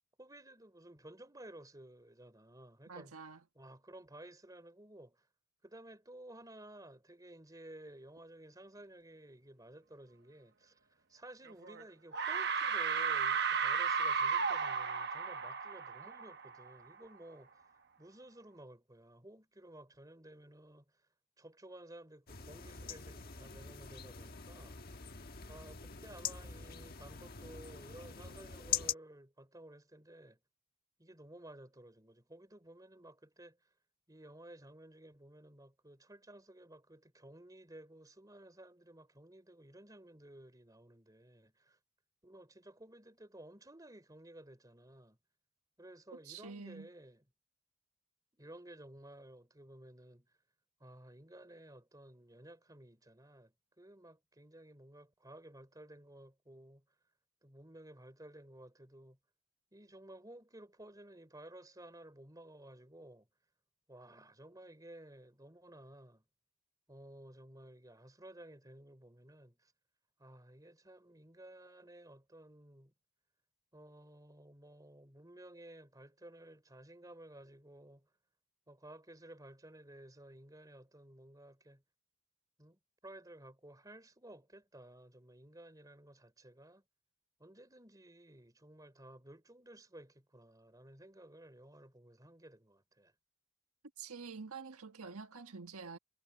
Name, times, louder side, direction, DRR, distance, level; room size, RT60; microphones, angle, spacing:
voice 1, 0.2-3.1 3.5-5.3 5.6-20.8 21.4-25.0 25.2-30.4 31.0-33.6 34.1-41.8 42.2-45.2 45.8-47.2 48.3-50.3 50.8-56.8 57.4-59.2 59.7-63.3 63.9-66.2 66.9-69.7 70.2-72.9 73.7-78.1 78.7-81.8 82.6-86.8 87.4-93.1, right 1 dB, 15° right, 3.4 m, -55 dB
voice 2, 2.9-3.4 46.2-46.9 94.0-96.0, right 5 dB, 80° right, 1.6 m, -47 dB
sound 1, 11.5-11.8 12.1-16.7, right 6 dB, 50° right, 1.0 m, -34 dB
sound 2, 22.3-28.9, left 8 dB, 45° left, 1.4 m, -43 dB
head